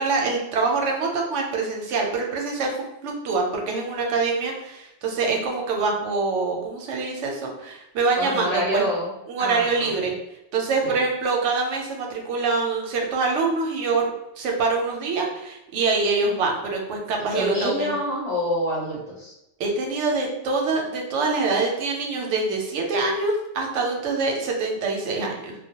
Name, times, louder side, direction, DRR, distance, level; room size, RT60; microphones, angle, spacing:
voice 1, 0.0-2.7 3.0-8.9 9.3-10.1 10.5-14.1 14.4-18.0 19.6-25.5, right 3 dB, 90° right, 1 dB, 0.9 m, -25 dB
voice 2, 8.2-9.1 9.4-10.1 10.8-10.9 17.2-19.3, equal, 60° left, -6 dB, 0.8 m, -27 dB
2.2 x 2.0 x 2.7 m, 0.86 s
omnidirectional pair, 1.2 m